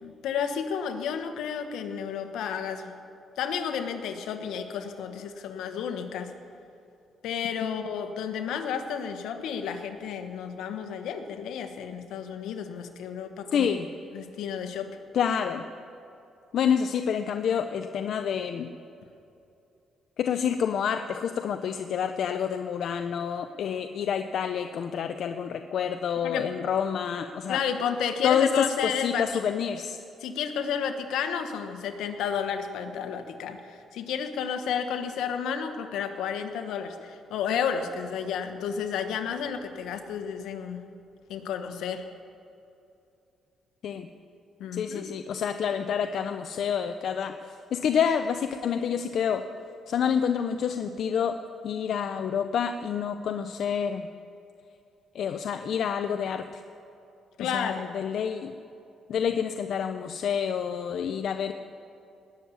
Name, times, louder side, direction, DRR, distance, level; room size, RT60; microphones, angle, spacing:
voice 1, 0.0-2.9 3.4-6.3 7.2-13.7 14.1-14.9 26.2-26.5 27.5-29.3 30.2-40.8 41.3-42.1 44.6-45.1 57.4-57.9, left 7 dB, 85° left, 7 dB, 1.3 m, -31 dB
voice 2, 13.5-13.9 15.1-15.6 16.5-18.7 20.2-27.6 28.2-30.0 43.8-44.1 44.7-47.4 47.7-49.5 49.9-51.4 51.6-54.1 55.1-56.5 57.4-58.5 59.1-61.5, left 7 dB, 65° left, 8 dB, 0.6 m, -28 dB
19.5 x 7.2 x 9.7 m, 2.8 s
cardioid pair, 90°, 0 cm